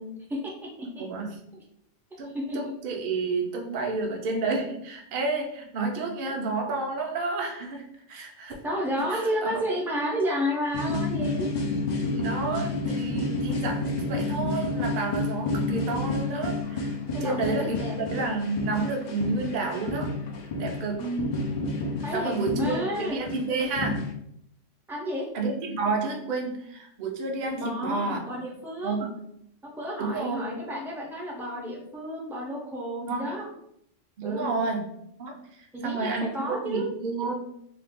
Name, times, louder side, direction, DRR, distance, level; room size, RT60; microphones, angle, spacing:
voice 1, 0.0-1.0 1.5-1.6 2.3-2.6 6.3-6.4 8.6-11.5 17.1-18.0 21.0-21.3 22.0-23.2 24.9-25.2 27.6-29.1 29.6-33.5 34.2-34.6 35.7-36.9, equal, 5° right, -3 dB, 0.3 m, -31 dB
voice 2, 1.0-1.4 2.2-8.6 9.1-9.6 12.1-20.1 20.6-21.1 22.1-24.0 25.3-28.2 28.8-29.1 30.0-30.5 33.1-33.4 34.2-34.8 35.2-35.4 35.8-37.3, right 3 dB, 55° right, 1 dB, 0.7 m, -30 dB
sound 1, 10.7-24.1, left 2 dB, 65° left, 0.4 m, -30 dB
2.5 x 2.3 x 3.5 m, 0.73 s
omnidirectional pair, 1.3 m